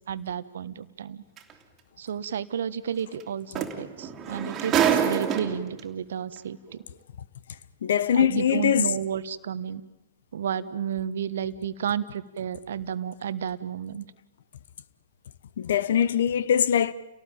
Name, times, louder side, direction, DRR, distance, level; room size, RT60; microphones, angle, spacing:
voice 1, 0.1-1.2 2.0-6.6 8.1-9.8 10.3-14.0, right 8 dB, 65° right, 1.3 m, -32 dB
sound 1, 1.4-1.5 3.2-3.3 3.5-5.8 6.7-6.8, right 8 dB, 25° right, 3.0 m, -26 dB
voice 2, 7.8-8.9 15.6-16.9, left 9 dB, 60° left, 1.1 m, -22 dB
30.0 x 18.0 x 9.0 m
figure-of-eight pair, 115°, 0 cm